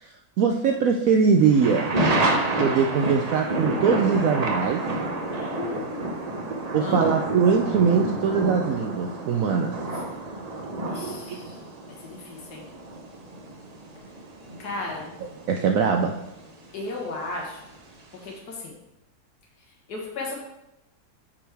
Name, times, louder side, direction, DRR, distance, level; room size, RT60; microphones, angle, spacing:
voice 1, 0.0-1.9 2.6-4.8 6.7-9.8 11.3-11.4 15.5-16.1, right 6 dB, 70° right, 3 dB, 0.9 m, -22 dB
sound 1, 1.4-17.0 17.3-17.4, right 2 dB, 45° right, 0.5 m, -29 dB
voice 2, 5.3-6.1 6.8-7.1 9.9-10.0 10.9-11.6 12.0-12.6 14.6-15.1 16.7-17.6 18.2-18.7 19.9-20.3, left 3 dB, 70° left, -2 dB, 2.0 m, -35 dB
8.9 x 4.9 x 3.4 m, 0.91 s
omnidirectional pair, 1.8 m